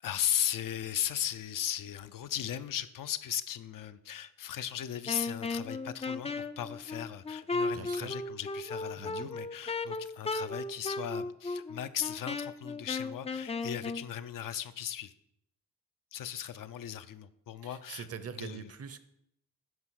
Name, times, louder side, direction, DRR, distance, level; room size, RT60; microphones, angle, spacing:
voice 1, 0.0-15.1 16.1-18.1 18.4-18.7, left 10 dB, 70° left, 11 dB, 0.6 m, -37 dB
Wind instrument woodwind instrument, 5.0-14.1, left 3 dB, 20° left, 0.4 m, -36 dB
voice 2, 7.7-8.1 9.0-9.3 17.6-19.0, right 7 dB, 45° right, 12 dB, 0.8 m, -43 dB
9.5 x 5.2 x 6.4 m, 0.78 s
cardioid pair, 115°, 34 cm